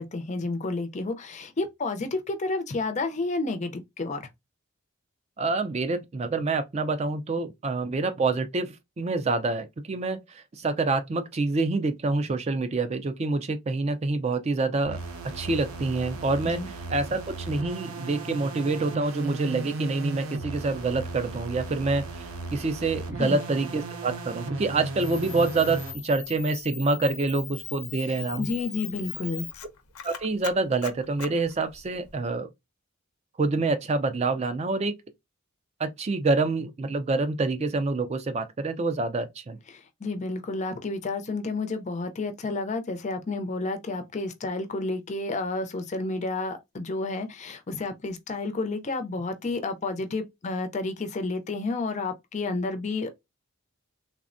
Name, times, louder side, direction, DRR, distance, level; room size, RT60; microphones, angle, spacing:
voice 1, 0.0-4.3 16.5-16.7 23.2-23.4 28.1-29.5 39.7-53.1, left 3 dB, 35° left, 0.4 m, -31 dB
voice 2, 5.4-15.0 15.3-28.5 30.0-32.5 33.4-34.9 35.8-39.6, right 3 dB, 30° right, 0.3 m, -27 dB
sound 1, 14.8-26.0, right 3 dB, 75° right, 0.6 m, -36 dB
Camera, 25.0-32.1, left 11 dB, 85° left, 0.6 m, -40 dB
3.4 x 2.0 x 2.5 m
head